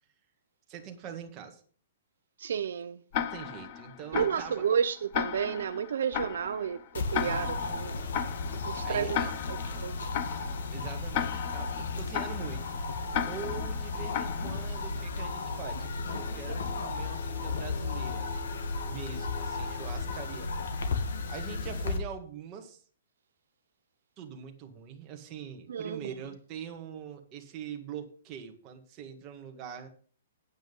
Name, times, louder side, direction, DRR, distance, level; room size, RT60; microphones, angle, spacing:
voice 1, 0.7-1.6 3.2-4.6 7.2-8.0 8.8-9.3 10.7-12.8 13.2-18.3 18.8-20.5 21.3-22.8 24.2-29.9, right 7 dB, 20° right, 1.7 m, -43 dB
voice 2, 2.4-3.0 4.1-7.9 8.6-9.2 9.8-10.0 25.7-26.1, right 7 dB, 65° right, 0.7 m, -31 dB
Tick-tock, 3.1-15.0, left 9 dB, 30° left, 0.9 m, -36 dB
sound 1, 6.9-22.0, left 3 dB, 65° left, 2.5 m, -34 dB
9.5 x 9.1 x 5.4 m
hypercardioid pair, 175°, 0 cm